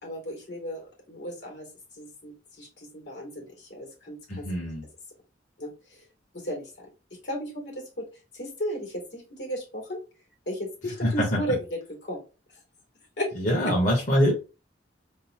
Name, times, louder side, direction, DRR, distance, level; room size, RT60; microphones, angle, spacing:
voice 1, 0.0-4.5 5.6-6.1 6.3-10.0 10.5-12.2 12.5-12.6 13.2-13.3 13.6-13.8, equal, 70° left, -1 dB, 2.2 m, -35 dB
voice 2, 4.3-4.8 11.0-11.4 13.4-14.3, equal, 45° left, -4 dB, 1.1 m, -23 dB
3.8 x 2.0 x 4.2 m, 0.32 s
head